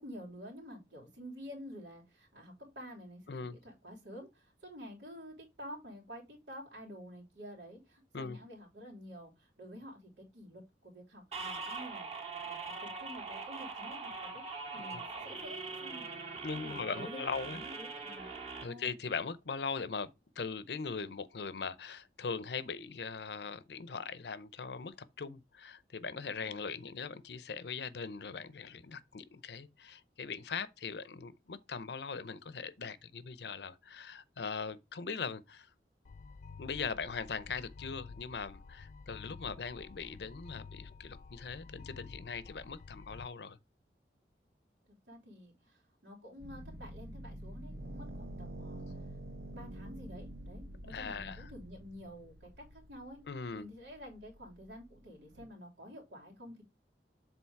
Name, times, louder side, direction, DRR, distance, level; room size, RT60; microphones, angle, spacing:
voice 1, 0.0-14.4 14.7-16.2 16.5-18.3 18.6-19.0 39.1-39.5 44.9-48.8 49.5-53.2 53.5-56.6, equal, 90° right, 3.1 m, -50 dB
sound 1, 11.3-18.6, right 4 dB, 35° right, 2.0 m, -42 dB
voice 2, 16.4-17.6 18.6-35.7 36.6-43.6 50.9-51.5 53.3-53.6, left 5 dB, 75° left, 0.6 m, -40 dB
sound 2, 36.0-43.3, left 4 dB, 45° left, 0.3 m, -51 dB
sound 3, 46.4-55.5, right 1 dB, 70° right, 1.2 m, -47 dB
7.2 x 3.9 x 4.6 m
head